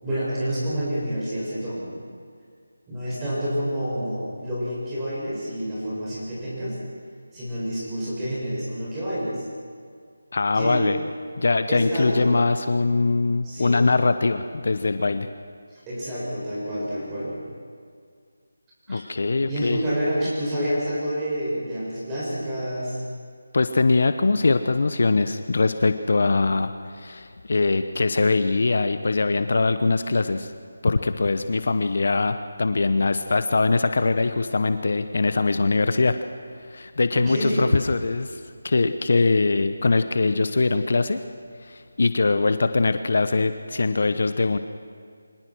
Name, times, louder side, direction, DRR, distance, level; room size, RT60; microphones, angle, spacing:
voice 1, 0.0-1.9 2.9-6.8 7.3-9.4 10.5-10.8 11.7-12.4 13.4-13.8 15.9-17.4 18.9-19.0 19.5-23.0 37.1-37.7, equal, 10° right, -8 dB, 7.0 m, -28 dB
voice 2, 10.3-11.0 11.4-15.3 18.9-19.8 23.5-30.5 30.8-36.2 36.7-41.2 41.6-44.6, left 3 dB, 55° left, 10 dB, 1.0 m, -22 dB
24.5 x 18.5 x 6.3 m, 2.1 s
figure-of-eight pair, 165°, 0 cm